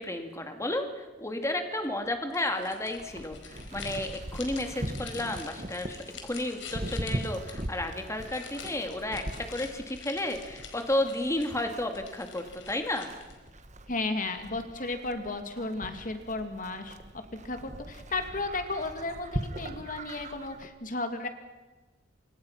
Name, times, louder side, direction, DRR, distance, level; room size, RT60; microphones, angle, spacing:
voice 1, 0.0-13.1, left 1 dB, 15° left, 5 dB, 2.3 m, -32 dB
sound 1, 2.3-13.5, left 6 dB, 85° left, 4.6 m, -47 dB
Livestock farm animals working animals, 3.0-20.7, right 1 dB, 40° right, 1.6 m, -41 dB
voice 2, 13.9-21.3, left 2 dB, 45° left, 7 dB, 2.7 m, -34 dB
29.5 x 26.0 x 5.9 m, 1.2 s
head